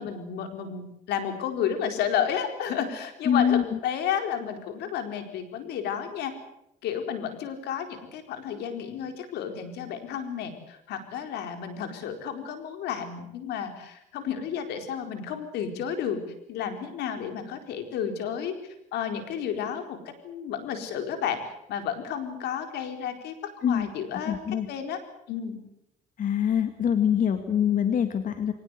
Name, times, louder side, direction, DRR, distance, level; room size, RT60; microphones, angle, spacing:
voice 1, 0.0-6.3 6.8-16.2 16.5-18.5 18.9-20.0 20.2-21.4 21.7-25.0 25.3-25.6, left 8 dB, 80° left, 7 dB, 4.5 m, -32 dB
voice 2, 3.3-3.6 23.6-23.9 24.3-24.7 26.2-28.5, left 8 dB, 50° left, 8 dB, 2.1 m, -24 dB
24.0 x 19.0 x 8.3 m, 0.82 s
cardioid pair, 110°, 17 cm